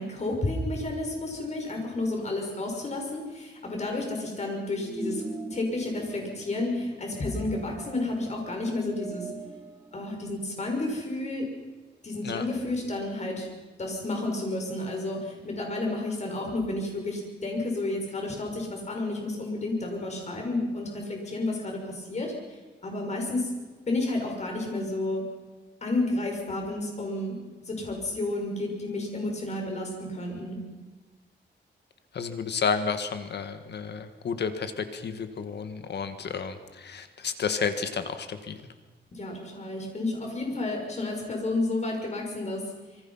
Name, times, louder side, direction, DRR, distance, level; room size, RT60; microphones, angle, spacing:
voice 1, 0.0-5.2 5.5-9.2 9.9-11.5 12.0-13.5 13.8-22.3 22.8-23.5 23.9-25.2 25.8-27.4 27.7-30.6 39.1-42.6, left 2 dB, 35° left, 1 dB, 5.9 m, -31 dB
sound 1, 4.7-10.9, right 2 dB, 15° right, 2.7 m, -41 dB
voice 2, 32.1-38.6, left 6 dB, 65° left, 9 dB, 1.7 m, -31 dB
26.0 x 23.0 x 5.7 m, 1.3 s
wide cardioid pair, 150°, 19 cm